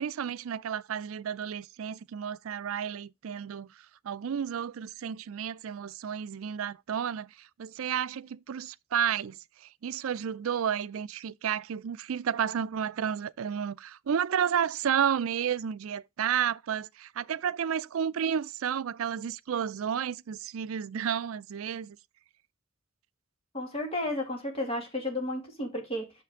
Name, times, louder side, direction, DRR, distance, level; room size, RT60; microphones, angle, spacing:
voice 1, 0.0-3.7 4.0-7.3 7.6-9.4 9.8-22.0, right 8 dB, 75° right, 0.4 m, -31 dB
voice 2, 23.5-26.1, left 1 dB, 30° left, 2.2 m, -32 dB
6.6 x 5.8 x 3.6 m
head